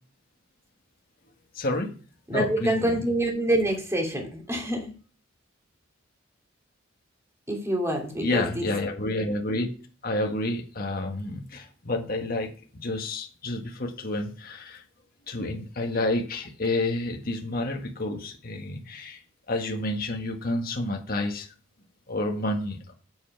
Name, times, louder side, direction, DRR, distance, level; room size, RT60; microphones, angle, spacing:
voice 1, 1.5-1.9 2.3-3.0 8.2-9.7 10.0-14.8 15.3-19.2 19.5-21.5 22.1-22.9, left 2 dB, 45° left, 2 dB, 1.6 m, -29 dB
voice 2, 2.3-4.9 7.5-8.7, right 1 dB, 15° right, 1 dB, 2.8 m, -26 dB
8.4 x 8.1 x 5.9 m, 0.39 s
head